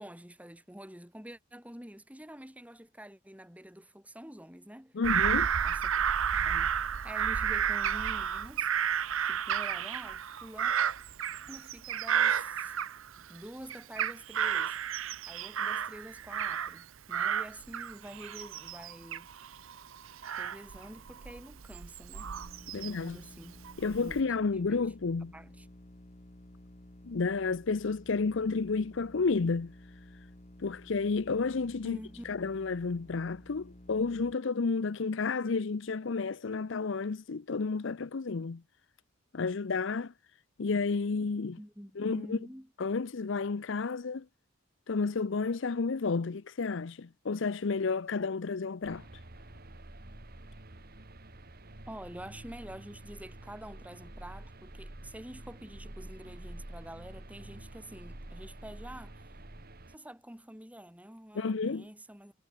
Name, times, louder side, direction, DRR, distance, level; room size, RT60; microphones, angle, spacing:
voice 1, 0.0-5.0 5.6-5.9 6.3-8.7 9.2-10.7 11.5-12.8 13.2-14.8 15.3-19.6 20.4-22.3 22.7-23.6 24.0-24.3 24.5-24.9 25.3-25.7 31.8-32.2 41.6-42.7 51.9-59.2 59.9-62.3, equal, 5° right, 4.7 m, -47 dB
voice 2, 4.9-5.5 22.7-23.2 23.8-25.3 27.0-29.7 30.6-32.0 32.3-38.6 39.3-40.1 40.6-41.6 42.0-42.4 42.8-44.3 44.9-49.0 61.3-61.8, left 4 dB, 60° left, 0.6 m, -31 dB
Bird vocalization bird call bird song / Crow, 5.0-13.4 13.7-16.8 17.1-23.1 23.6-24.2, right 8 dB, 75° right, 0.7 m, -32 dB
sound 1, 22.2-34.3, equal, 35° left, 3.2 m, -53 dB
sound 2, 48.8-60.0, right 1 dB, 45° right, 2.1 m, -48 dB
head